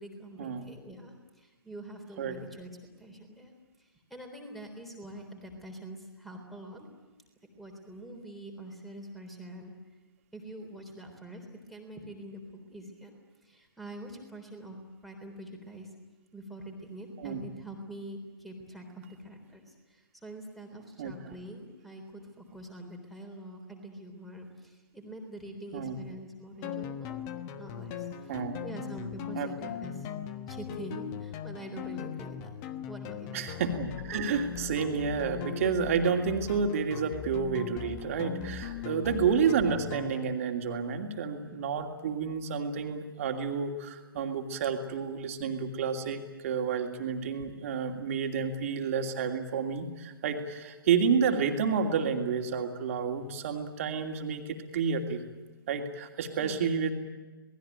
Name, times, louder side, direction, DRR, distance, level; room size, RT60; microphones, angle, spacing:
voice 1, 0.0-2.7 3.0-3.5 3.8-6.9 7.6-9.8 10.3-13.1 13.4-15.9 16.3-27.2 27.6-28.3 28.6-30.1 30.5-32.5 32.8-33.4 56.4-56.8, right 1 dB, ahead, 4 dB, 3.6 m, -45 dB
sound 1, 26.6-40.3, left 8 dB, 20° left, 1.1 m, -39 dB
voice 2, 28.3-28.6 29.3-29.5 33.3-55.2 55.7-56.9, right 6 dB, 35° right, 3 dB, 2.8 m, -30 dB
27.5 x 19.5 x 9.1 m, 1.2 s
figure-of-eight pair, 135°, 13 cm